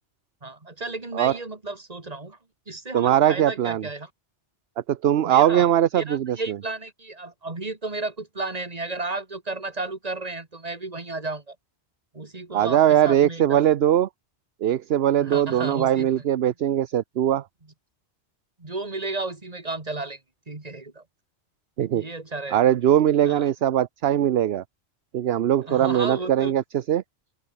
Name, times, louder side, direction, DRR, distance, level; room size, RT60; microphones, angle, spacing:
voice 1, 0.4-2.4 2.7-4.1 5.2-11.6 12.1-13.6 15.2-16.2 18.6-20.2 20.5-21.0 21.9-22.7 23.2-23.5 25.7-26.5, right 3 dB, 35° right, 2.3 m, -33 dB
voice 2, 2.9-3.8 4.9-6.4 12.5-14.1 14.6-17.4 21.8-22.0 22.5-24.6 25.1-26.6 26.9-27.0, right 11 dB, 65° right, 0.9 m, -20 dB
open air
omnidirectional pair, 1.2 m